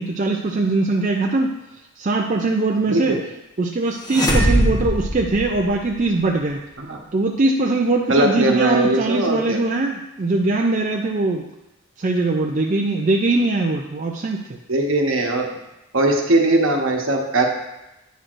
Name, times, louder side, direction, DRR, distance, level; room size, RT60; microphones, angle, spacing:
voice 1, 0.0-1.5 2.0-3.2 3.6-6.6 7.1-11.5 12.0-14.6, right 2 dB, 35° right, 1 dB, 0.4 m, -21 dB
voice 2, 2.9-3.2 6.8-7.0 8.1-9.6 14.7-15.4 15.9-17.5, right 2 dB, 65° right, 1 dB, 1.0 m, -19 dB
sound 1, 4.0-6.0, equal, 15° left, 0.8 m, -20 dB
9.1 x 6.0 x 2.5 m, 0.94 s
head